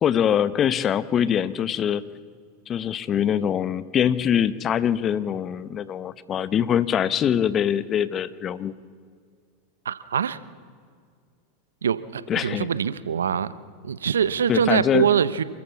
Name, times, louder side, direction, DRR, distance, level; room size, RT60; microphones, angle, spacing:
voice 1, 0.0-2.0 2.7-8.8 12.3-12.7 14.5-15.1, left 9 dB, 35° left, 17 dB, 0.9 m, -23 dB
voice 2, 9.8-10.4 11.8-13.5 13.8-15.4, right 8 dB, 90° right, 16 dB, 0.8 m, -23 dB
28.0 x 14.0 x 7.0 m, 2.1 s
hypercardioid pair, 100°, 0 cm